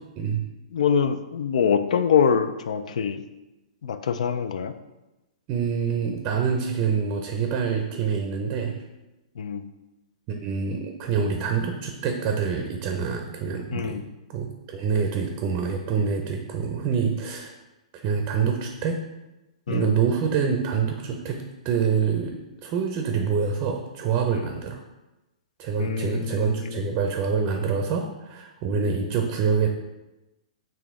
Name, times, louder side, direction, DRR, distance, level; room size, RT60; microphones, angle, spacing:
voice 1, 0.7-3.2 3.8-4.7 9.4-9.7 13.7-14.0 19.7-19.9 25.8-26.8, left 7 dB, 70° left, 11 dB, 0.4 m, -24 dB
voice 2, 5.5-8.8 10.3-14.0 14.3-17.6 17.9-19.0 19.7-24.8 25.6-29.7, right 6 dB, 35° right, 3 dB, 0.5 m, -26 dB
4.9 x 2.9 x 3.6 m, 1.0 s
hypercardioid pair, 135°, 4 cm